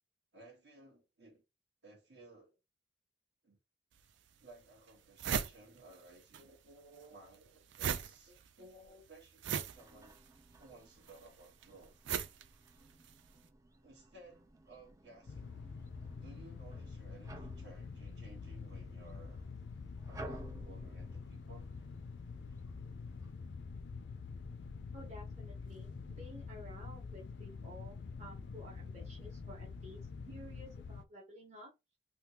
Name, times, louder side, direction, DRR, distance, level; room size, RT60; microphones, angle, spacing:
voice 1, 0.3-1.4 1.8-2.6 3.4-3.6 4.4-10.2 10.6-12.0 13.8-15.5 16.2-19.4 20.1-21.7 28.8-28.9, right 2 dB, 70° right, 1.5 m, -58 dB
sound 1, 3.9-4.0 4.6-4.7 4.9-6.4 6.7-13.3, right 7 dB, 85° right, 0.4 m, -39 dB
sound 2, 9.7-23.3, right 1 dB, 20° right, 0.4 m, -55 dB
sound 3, 15.3-31.0, left 4 dB, 70° left, 0.4 m, -46 dB
voice 2, 24.9-30.0 30.3-31.7, equal, 40° right, 1.0 m, -53 dB
3.5 x 2.3 x 2.9 m
head